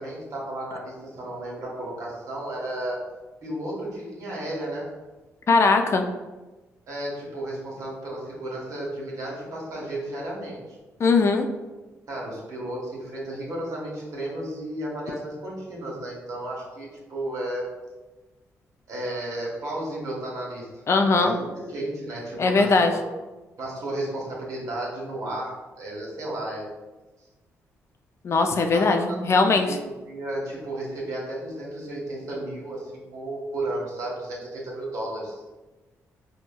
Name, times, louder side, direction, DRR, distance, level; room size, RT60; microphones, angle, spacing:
voice 1, 0.0-3.0 3.4-4.9 6.9-10.6 12.1-17.7 18.9-20.7 21.2-23.0 23.6-26.7 28.7-29.2 29.4-35.5, right 1 dB, 65° right, -4 dB, 1.2 m, -33 dB
voice 2, 5.5-6.0 11.0-11.5 20.9-21.3 22.4-22.9 28.2-29.7, left 3 dB, 50° left, 5 dB, 0.4 m, -20 dB
4.5 x 2.1 x 2.2 m, 1.1 s
supercardioid pair, 65°, 6 cm